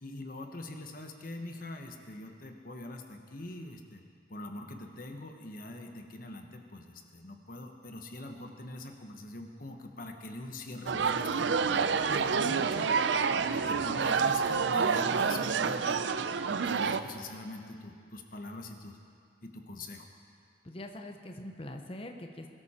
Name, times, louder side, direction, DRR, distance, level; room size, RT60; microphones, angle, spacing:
voice 1, 0.0-4.0 4.3-13.1 13.5-16.0 16.6-19.0 19.4-20.1, left 2 dB, 50° left, 4 dB, 1.2 m, -43 dB
sound 1, 10.9-17.0, right 5 dB, 80° right, 0.5 m, -28 dB
voice 2, 20.6-22.5, left 1 dB, 30° left, 4 dB, 1.0 m, -43 dB
21.5 x 13.0 x 4.4 m, 2.3 s
head